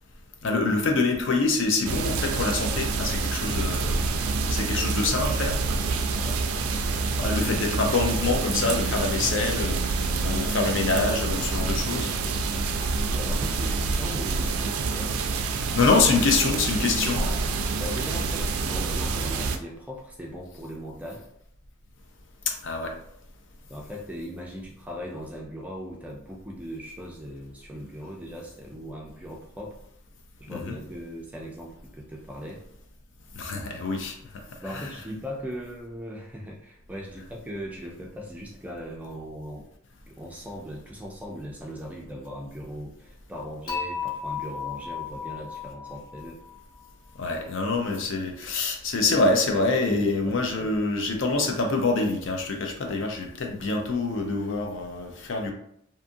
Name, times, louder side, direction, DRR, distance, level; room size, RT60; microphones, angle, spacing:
voice 1, 0.4-4.0 4.5-5.6 7.2-12.1 15.7-17.2 22.5-22.9 30.5-30.8 33.3-34.2 34.7-34.9 47.2-55.5, left 3 dB, 60° left, 3 dB, 0.5 m, -25 dB
sound 1, 1.8-19.6, right 4 dB, 85° right, 0.3 m, -27 dB
voice 2, 13.1-15.1 17.1-17.4 17.7-21.3 23.7-29.8 30.4-32.6 34.6-39.7 40.1-46.4 49.9-50.7 52.8-53.0, equal, 5° right, -2 dB, 0.4 m, -39 dB
Dishes pots and pans / Chink clink, 43.7-46.8, left 6 dB, 40° left, 1.0 m, -34 dB
2.6 x 2.5 x 2.5 m, 0.72 s
head